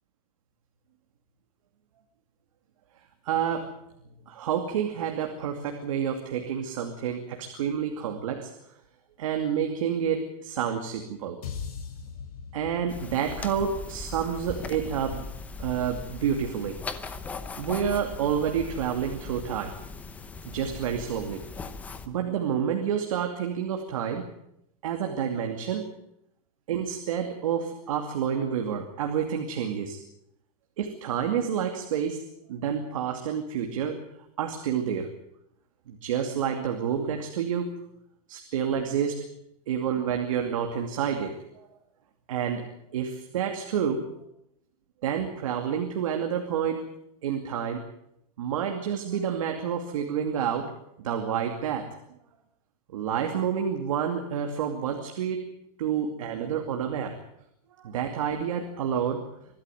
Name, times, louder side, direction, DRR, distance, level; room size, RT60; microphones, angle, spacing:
voice 1, 3.2-3.7 4.3-8.7 9.2-11.4 12.5-15.3 15.6-17.2 17.6-19.8 20.4-21.4 22.1-24.3 24.8-25.9 26.7-30.0 30.8-32.2 32.5-34.0 34.4-35.1 35.9-37.7 38.3-39.3 39.7-41.7 42.3-44.1 45.0-46.8 47.2-47.9 48.4-50.7 51.0-52.0 52.9-55.5 55.8-57.2 57.7-59.3, right 8 dB, 60° right, 4 dB, 2.6 m, -29 dB
sound 1, 11.4-15.8, left 6 dB, 75° left, 6.4 m, -42 dB
sound 2, 12.9-22.1, left 4 dB, 5° left, 0.7 m, -39 dB
25.0 x 13.0 x 9.1 m, 0.79 s
supercardioid pair, 180°, 19 cm